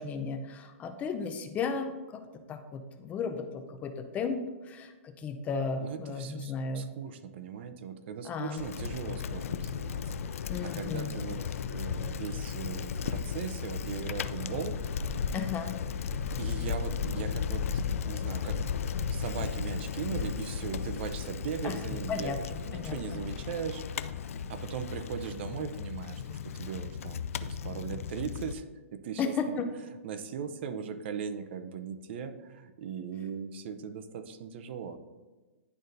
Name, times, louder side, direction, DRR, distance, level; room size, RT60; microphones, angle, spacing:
voice 1, 0.0-2.2 2.5-4.9 5.2-6.9 8.2-8.6 10.5-11.1 15.3-15.8 21.6-21.8 22.1-22.4 22.7-23.0 29.2-29.7, left 5 dB, 20° left, 7 dB, 0.5 m, -34 dB
voice 2, 5.8-11.4 11.7-14.7 16.4-18.6 19.1-24.1 24.5-28.6 28.9-29.6 30.0-35.0, right 7 dB, 50° right, 10 dB, 0.6 m, -39 dB
Bicycle, 8.6-28.5, left 7 dB, 80° left, 0.3 m, -35 dB
10.5 x 4.0 x 2.6 m, 1.2 s
hypercardioid pair, 145°, 8 cm